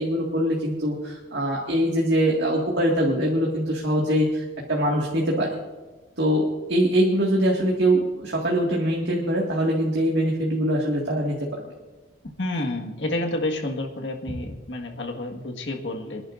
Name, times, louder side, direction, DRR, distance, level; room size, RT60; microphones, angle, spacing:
voice 1, 0.0-5.5 6.2-6.4 6.7-11.3, equal, 85° right, -3 dB, 1.9 m, -23 dB
voice 2, 12.4-16.2, left 1 dB, 85° left, 2 dB, 1.7 m, -29 dB
26.5 x 11.0 x 2.6 m, 1.2 s
head